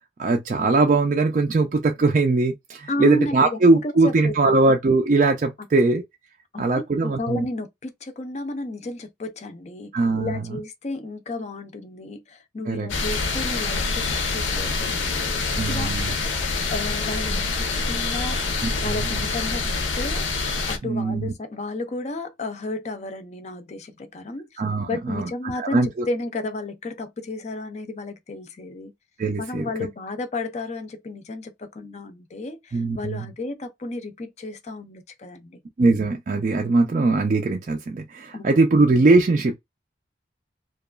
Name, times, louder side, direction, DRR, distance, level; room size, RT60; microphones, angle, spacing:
voice 1, 0.2-6.0 6.6-7.5 9.9-10.4 12.7-12.9 15.6-16.1 18.6-19.0 20.8-21.3 24.6-25.3 25.6-26.1 29.2-29.7 32.7-33.3 35.8-39.5, right 3 dB, 40° right, 0.3 m, -21 dB
voice 2, 2.9-4.6 6.5-15.9 16.7-18.4 18.8-20.3 20.7-28.9 29.4-35.6 38.3-38.6, left 2 dB, 35° left, 0.4 m, -33 dB
sound 1, 12.9-20.8, left 3 dB, 80° left, 0.6 m, -26 dB
2.8 x 2.3 x 2.2 m
head